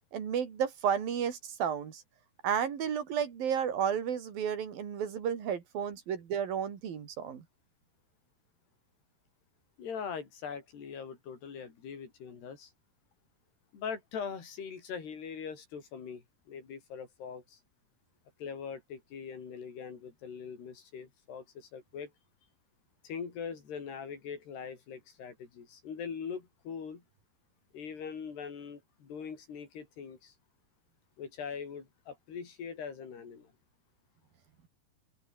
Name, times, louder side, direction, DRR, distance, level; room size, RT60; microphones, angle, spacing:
voice 1, 0.1-2.0 2.4-7.4, right 8 dB, 65° right, 4.7 m, -32 dB
voice 2, 9.8-12.7 13.7-17.6 18.4-22.1 23.0-27.0 27.7-30.3 31.2-33.5, left 6 dB, 85° left, 6.7 m, -42 dB
open air
omnidirectional pair, 4.6 m